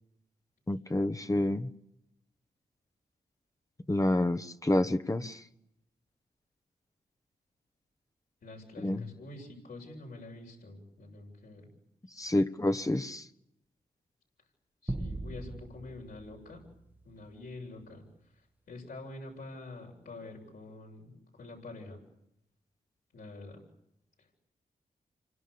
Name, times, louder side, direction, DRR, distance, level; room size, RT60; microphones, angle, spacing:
voice 1, 0.7-1.7 3.9-5.4 8.8-9.0 12.2-13.2, left 1 dB, 20° left, 8 dB, 1.3 m, -28 dB
voice 2, 8.4-11.7 14.8-16.6 17.0-18.1 18.3-22.0 23.1-23.6 24.2-24.4, left 2 dB, 75° left, -1 dB, 8.0 m, -46 dB
sound 1, 14.9-17.5, right 1 dB, 10° right, 1.3 m, -40 dB
28.0 x 24.5 x 7.0 m, 0.81 s
cardioid pair, 55°, 16 cm